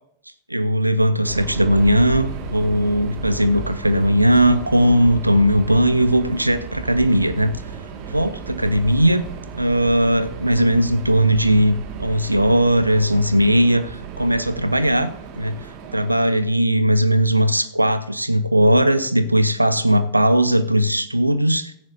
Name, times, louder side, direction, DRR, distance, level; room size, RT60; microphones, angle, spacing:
voice 1, 0.5-7.5 8.1-9.2 9.5-15.1 15.4-15.6 15.9-21.7, equal, 85° right, 13 dB, 0.8 m, -18 dB
Subway metro underground, 1.2-16.6, right 6 dB, 45° right, 2.0 m, -34 dB
17.0 x 14.0 x 2.7 m, 0.71 s
figure-of-eight pair, 90°, 0 cm